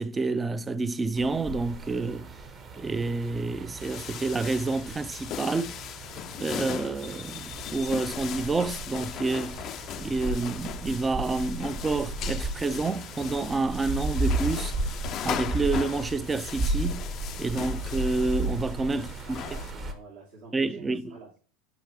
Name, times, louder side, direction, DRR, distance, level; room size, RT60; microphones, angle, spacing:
voice 1, 0.0-2.3 2.8-5.7 6.4-9.6 10.0-14.7 15.2-17.0 17.4-19.1 20.5-21.1, right 3 dB, 20° right, 0.5 m, -29 dB
sound 1, 1.2-19.9, right 2 dB, 40° right, 1.3 m, -35 dB
sound 2, 3.8-19.7, left 11 dB, 45° left, 0.4 m, -39 dB
voice 2, 18.9-21.4, right 3 dB, 70° right, 2.6 m, -47 dB
7.0 x 4.9 x 3.2 m
hypercardioid pair, 95°, 0 cm